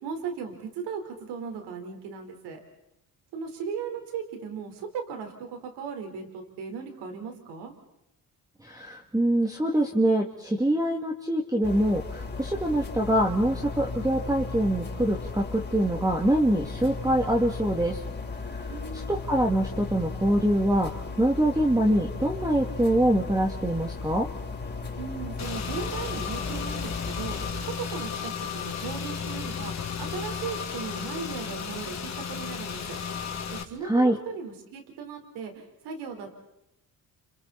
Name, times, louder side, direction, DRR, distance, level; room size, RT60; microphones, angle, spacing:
voice 1, 0.0-2.6 3.3-7.7 18.7-19.2 25.0-27.4 27.6-33.0 33.5-36.3, right 6 dB, 85° right, 4 dB, 4.5 m, -37 dB
voice 2, 8.6-18.0 18.5-18.6 18.9-20.9 21.2-24.3 33.8-34.2, right 1 dB, 10° right, 1 dB, 2.5 m, -24 dB
sound 1, 11.6-27.5, left 4 dB, 25° left, 5.0 m, -36 dB
Car / Engine, 25.4-33.6, left 6 dB, 40° left, 2.8 m, -34 dB
30.0 x 29.5 x 4.3 m, 0.84 s
supercardioid pair, 80°, 40 cm